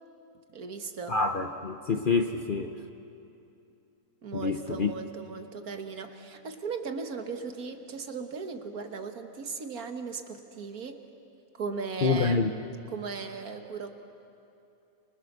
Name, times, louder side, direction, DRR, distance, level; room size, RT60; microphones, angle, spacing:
voice 1, 0.5-1.2 4.2-11.0 11.6-12.4 12.9-13.9, right 5 dB, 65° right, 6 dB, 1.9 m, -37 dB
voice 2, 1.1-2.8 4.3-4.9 12.0-12.5, left 4 dB, 40° left, 6 dB, 0.9 m, -27 dB
28.0 x 25.5 x 6.7 m, 2.7 s
omnidirectional pair, 1.7 m